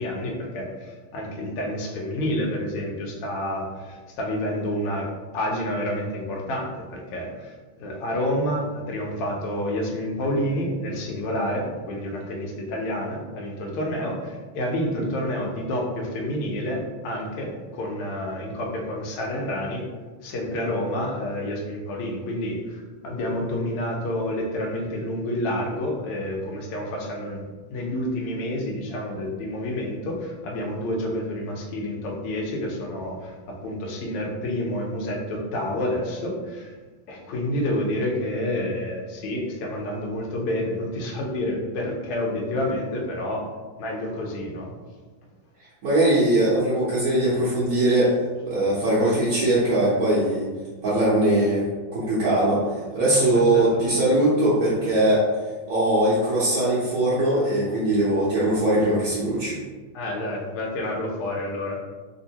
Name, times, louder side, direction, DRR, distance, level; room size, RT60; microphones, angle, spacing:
voice 1, 0.0-19.8 20.2-27.4 27.7-36.7 37.1-43.5 43.8-44.7 53.1-53.9 58.7-58.9 59.9-61.8, left 1 dB, 90° left, -1 dB, 1.5 m, -29 dB
voice 2, 45.8-48.2 48.5-50.5 50.8-55.2 55.7-59.6, right 1 dB, 60° right, -10 dB, 0.9 m, -21 dB
3.5 x 2.7 x 2.8 m, 1.4 s
omnidirectional pair, 2.4 m